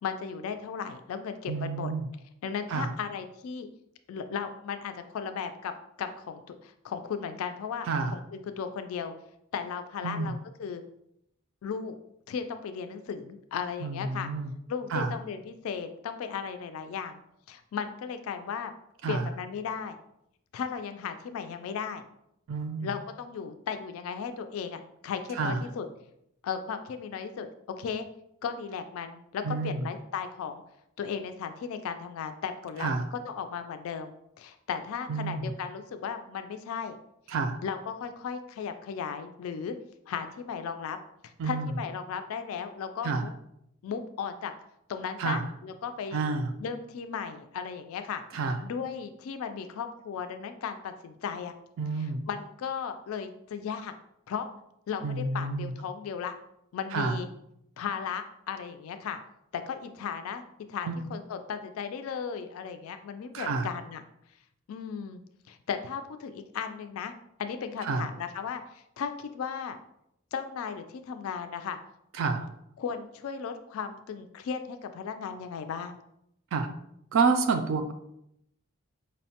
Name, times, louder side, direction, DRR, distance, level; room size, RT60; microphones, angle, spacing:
voice 1, 0.0-1.9 2.4-3.7 4.1-7.9 8.1-9.1 9.5-10.8 11.6-11.9 12.3-14.3 14.7-17.2 17.5-18.7 19.1-20.0 20.5-22.0 22.8-25.9 26.4-27.5 27.8-28.1 28.4-30.6 31.0-32.9 33.2-37.0 37.6-39.7 40.1-41.0 41.2-43.3 43.8-44.5 44.9-46.2 46.6-48.2 48.6-51.5 52.3-53.9 54.3-54.5 54.9-56.4 56.7-57.3 57.8-59.2 59.5-60.4 60.7-64.0 64.7-65.2 65.5-67.1 67.4-69.8 70.3-71.8 72.8-76.0, left 6 dB, 75° left, 8 dB, 0.3 m, -36 dB
voice 2, 1.5-2.1 2.7-2.9 7.9-8.1 10.0-10.4 13.8-14.5 14.9-15.1 19.0-19.3 22.5-22.9 25.3-25.6 29.4-29.9 32.8-33.1 35.1-35.5 37.3-37.6 41.4-41.7 43.0-43.3 45.2-45.5 46.1-46.5 48.3-48.6 51.8-52.2 55.0-55.7 56.9-57.2 60.9-61.0 63.3-63.7 67.8-68.1 72.2-72.5 76.5-76.7 77.1-77.9, right 4 dB, 60° right, 6 dB, 0.3 m, -29 dB
5.1 x 2.1 x 2.8 m, 0.78 s
head